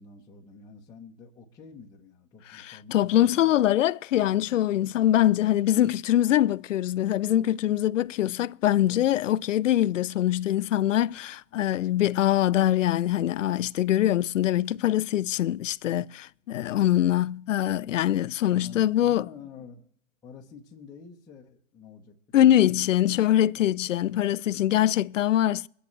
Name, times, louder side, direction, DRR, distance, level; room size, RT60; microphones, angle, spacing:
voice 1, 0.0-3.6 8.8-9.0 18.5-19.9 20.2-23.2 23.6-24.0, left 5 dB, 10° left, 0.9 m, -48 dB
voice 2, 2.5-19.3 22.3-25.7, left 12 dB, 80° left, 0.5 m, -23 dB
23.0 x 9.9 x 3.2 m
hypercardioid pair, 150°, 38 cm